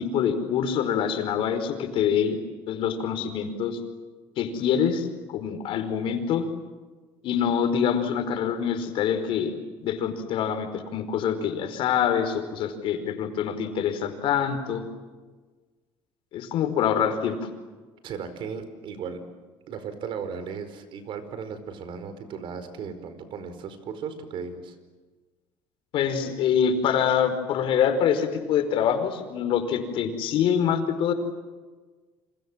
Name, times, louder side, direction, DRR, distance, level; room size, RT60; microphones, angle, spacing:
voice 1, 0.0-2.4 2.7-3.8 4.4-5.1 5.3-6.4 7.2-14.8 16.3-17.4 25.9-31.1, left 8 dB, 65° left, 7 dB, 4.9 m, -25 dB
voice 2, 18.0-19.2 19.7-24.8, right 6 dB, 60° right, 11 dB, 4.8 m, -36 dB
29.5 x 26.5 x 7.6 m, 1.4 s
cardioid pair, 110°, 10 cm